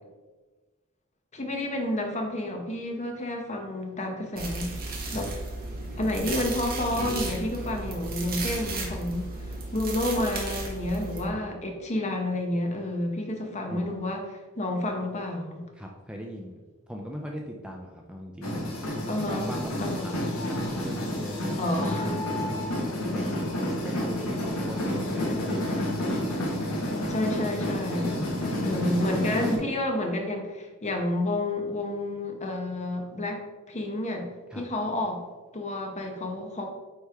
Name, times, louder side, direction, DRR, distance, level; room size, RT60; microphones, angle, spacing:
voice 1, 1.3-4.8 5.1-5.3 6.0-15.6 19.1-19.5 19.8-20.1 21.6-22.1 27.1-28.2 28.6-33.4 33.7-34.3 34.5-35.2 35.5-36.7, left 1 dB, 35° left, 3 dB, 0.9 m, -30 dB
sound 1, 4.4-11.3, right 2 dB, 45° right, 1.3 m, -34 dB
voice 2, 15.7-16.6 16.9-18.8 19.3-23.5 23.8-25.8 28.2-28.9 34.5-34.6, equal, 5° right, 0 dB, 0.4 m, -39 dB
sound 2, 18.4-29.6, left 1 dB, 75° left, 1.5 m, -30 dB
9.0 x 3.3 x 3.4 m, 1.3 s
head